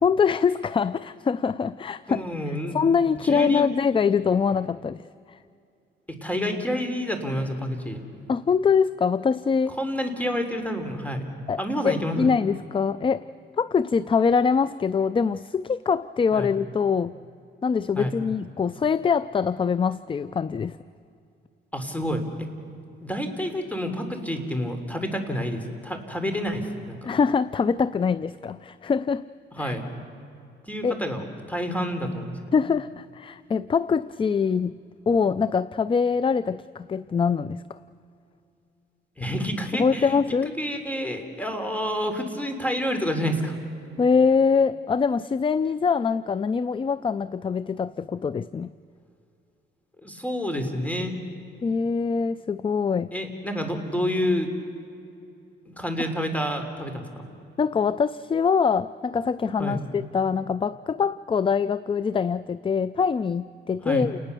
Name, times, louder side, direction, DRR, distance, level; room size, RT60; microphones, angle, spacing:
voice 1, 0.0-2.2 2.7-5.0 5.3-5.4 8.3-9.8 11.5-11.6 11.8-13.2 13.6-17.2 17.6-20.8 27.0-29.2 29.6-29.8 30.8-30.9 32.5-34.8 35.1-37.8 39.8-40.5 44.0-48.7 51.6-53.1 57.6-64.2, left 5 dB, 25° left, 17 dB, 0.4 m, -24 dB
voice 2, 2.1-2.8 3.2-3.7 6.1-8.0 9.7-11.3 11.6-12.3 16.3-16.5 18.0-18.1 21.7-22.5 23.0-27.1 29.5-29.9 30.6-32.4 39.2-43.6 50.0-51.1 53.1-54.5 55.7-57.2 59.6-59.8 63.8-64.1, equal, 5° left, 6 dB, 3.5 m, -29 dB
29.0 x 19.5 x 6.9 m, 2.6 s
cardioid pair, 90°, 20 cm